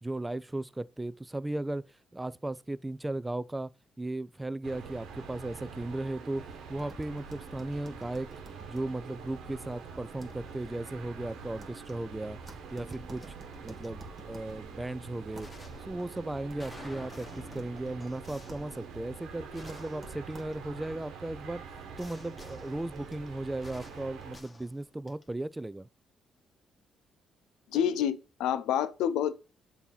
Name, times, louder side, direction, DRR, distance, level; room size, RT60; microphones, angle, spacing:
voice 1, 0.0-1.9 2.1-3.7 4.0-6.4 6.7-8.3 8.7-12.4 12.7-13.2 13.6-15.5 15.9-21.6 22.0-25.9, right 2 dB, 15° right, 0.3 m, -36 dB
sound 1, 4.6-24.4, right 5 dB, 80° right, 1.1 m, -45 dB
sound 2, 6.8-20.8, right 1 dB, 40° right, 1.6 m, -54 dB
sound 3, 9.2-9.4 9.7-10.1 11.8-11.9 12.5-13.3 13.8-13.9 15.4-21.0 22.0-25.4, left 1 dB, 20° left, 1.3 m, -52 dB
voice 2, 27.7-29.3, left 9 dB, 90° left, 0.5 m, -28 dB
7.0 x 2.8 x 5.5 m
cardioid pair, 90°, 0 cm